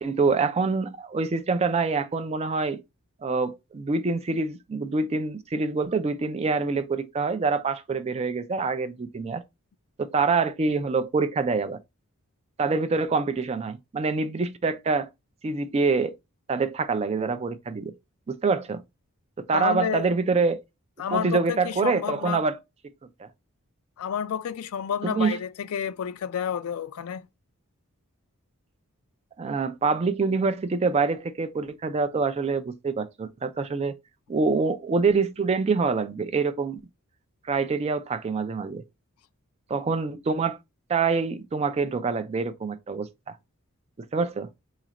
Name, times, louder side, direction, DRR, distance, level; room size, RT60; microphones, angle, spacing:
voice 1, 0.0-2.8 3.2-9.4 10.0-11.8 12.6-15.1 15.4-16.1 16.5-17.9 18.3-18.8 19.4-20.6 21.1-22.6 23.2-23.3 25.0-25.4 29.4-33.9 34.3-36.8 37.5-38.8 39.7-40.6 40.9-43.4 44.1-44.5, right 4 dB, 30° right, 0.3 m, -25 dB
voice 2, 19.5-20.1 21.0-22.4 24.0-27.3, left 8 dB, 75° left, 0.4 m, -30 dB
4.1 x 2.4 x 2.8 m
head